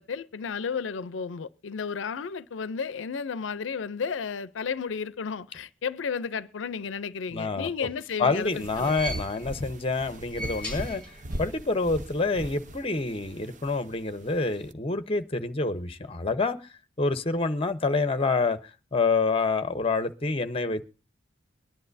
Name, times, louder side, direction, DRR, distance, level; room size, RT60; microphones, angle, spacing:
voice 1, 0.0-8.9, left 6 dB, 90° left, 0.5 m, -33 dB
voice 2, 7.3-7.7 8.2-11.0 11.4-16.6 17.0-18.6 18.9-20.8, left 3 dB, 30° left, 0.8 m, -27 dB
sound 1, 7.7-9.7 10.1-11.6 11.8-11.9 13.0-13.1, equal, 5° left, 4.5 m, -40 dB
sound 2, 8.3-14.7, right 1 dB, 40° right, 0.8 m, -40 dB
22.5 x 10.5 x 2.6 m
head